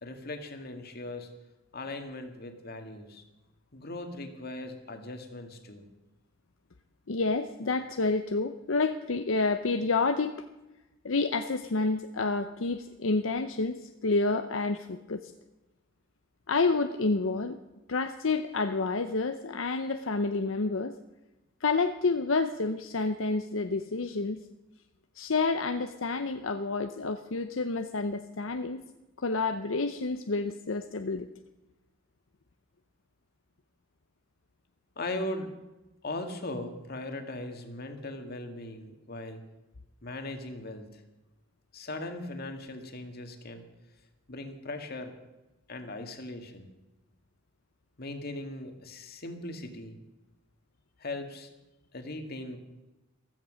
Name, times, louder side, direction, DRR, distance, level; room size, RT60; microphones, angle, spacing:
voice 1, 0.0-1.3 1.7-3.2 3.7-5.8 35.0-35.5 36.0-39.4 40.0-41.0 41.7-43.6 44.3-45.1 45.7-46.7 48.0-50.0 51.0-51.5 51.9-52.6, left 2 dB, 50° left, 6 dB, 2.1 m, -39 dB
voice 2, 7.1-10.4 11.0-15.3 16.5-17.6 17.9-20.9 21.6-24.4 25.2-28.8 29.2-31.3, left 3 dB, 80° left, 8 dB, 0.8 m, -29 dB
15.5 x 13.5 x 6.4 m, 1.0 s
head